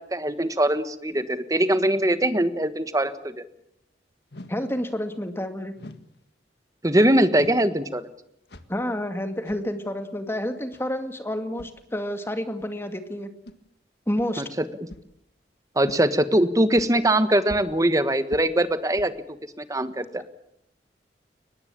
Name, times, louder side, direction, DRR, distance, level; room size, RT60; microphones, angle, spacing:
voice 1, 0.1-3.4 6.8-8.0 14.4-14.7 15.7-19.1 19.6-20.2, right 1 dB, 20° right, 11 dB, 1.3 m, -22 dB
sound 1, 4.3-4.7 5.8-6.1 7.3-7.7 8.5-8.8 9.4-9.7 10.7-10.9 11.6-11.7 12.6-12.7 13.4-13.6 14.2-14.3 14.9-15.1 15.9-16.0 16.8-16.9 17.5-17.8 18.3-18.6 19.0-19.2, left 1 dB, 65° left, 1.8 m, -42 dB
voice 2, 4.5-5.7 8.7-13.3 14.1-14.4, left 1 dB, 15° left, 7 dB, 2.2 m, -29 dB
23.0 x 20.5 x 8.5 m, 0.75 s
head